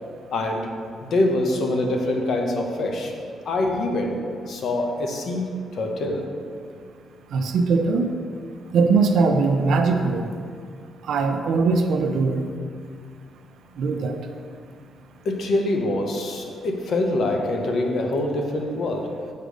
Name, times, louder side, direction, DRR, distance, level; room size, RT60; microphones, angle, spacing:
voice 1, 0.3-0.7 1.0-3.1 3.4-6.3 15.2-19.2, left 2 dB, 65° left, 2 dB, 1.0 m, -25 dB
voice 2, 7.3-8.1 8.7-10.2 11.1-12.5 13.8-14.2, right 4 dB, 70° right, 5 dB, 0.6 m, -20 dB
6.6 x 4.9 x 5.1 m, 2.2 s
cardioid pair, 120°, 0 cm